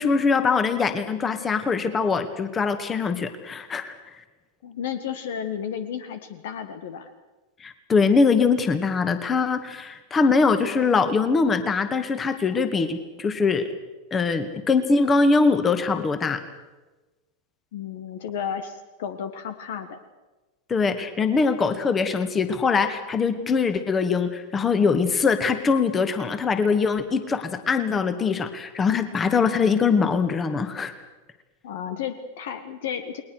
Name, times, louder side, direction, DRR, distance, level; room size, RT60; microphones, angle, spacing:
voice 1, 0.0-4.0 7.6-13.7 14.1-16.4 20.7-30.9, left 4 dB, 20° left, 10 dB, 2.2 m, -22 dB
voice 2, 4.6-7.1 17.7-20.0 31.6-33.2, left 8 dB, 55° left, 11 dB, 1.7 m, -32 dB
29.5 x 21.5 x 6.5 m, 1.2 s
figure-of-eight pair, 90°, 0 cm